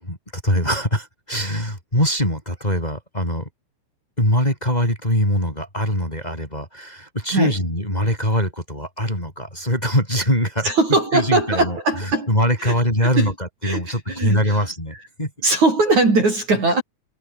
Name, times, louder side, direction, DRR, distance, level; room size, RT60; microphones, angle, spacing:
voice 1, 0.0-3.5 4.2-15.3, equal, 10° left, 7.5 m, -23 dB
voice 2, 10.6-12.3 12.6-12.7 13.0-13.3 13.6-14.6 15.4-16.8, right 3 dB, 40° right, 7.1 m, -20 dB
omnidirectional pair, 5.4 m